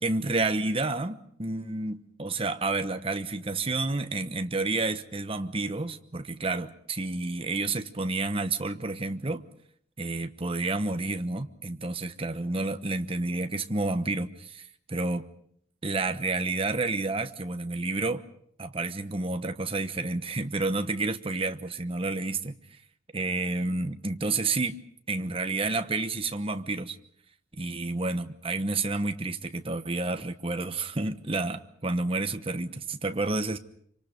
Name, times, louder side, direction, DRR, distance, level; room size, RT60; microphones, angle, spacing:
voice 1, 0.0-9.4 10.0-15.3 15.8-18.2 18.6-22.6 23.1-24.8 25.1-27.0 27.5-33.6, right 3 dB, 30° right, 8 dB, 1.1 m, -30 dB
26.0 x 25.5 x 5.2 m, 0.66 s
head